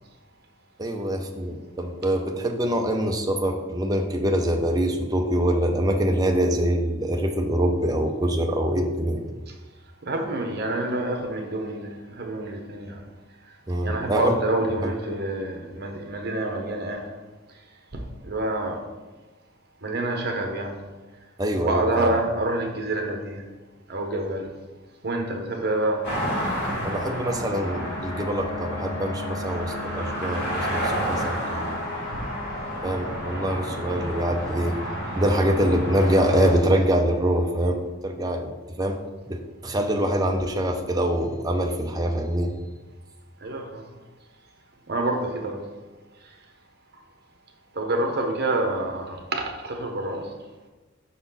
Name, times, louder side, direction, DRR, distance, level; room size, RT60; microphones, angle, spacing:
voice 1, 0.8-9.2 13.7-14.3 14.8-14.9 21.4-22.1 26.8-31.8 32.8-38.5 38.8-39.0 39.3-42.6, equal, 20° right, 0.6 m, -24 dB
voice 2, 10.0-13.0 13.8-17.1 18.2-18.8 19.8-20.7 21.6-23.4 23.9-24.5 25.0-26.0 32.1-32.2 43.4-43.8 44.9-45.6 47.8-50.3, right 2 dB, 55° right, 1.0 m, -27 dB
sound 1, 26.0-36.5, equal, 55° left, 2.2 m, -31 dB
Wind instrument woodwind instrument, 27.6-33.3, left 2 dB, 90° left, 0.9 m, -38 dB
5.8 x 4.2 x 5.6 m
head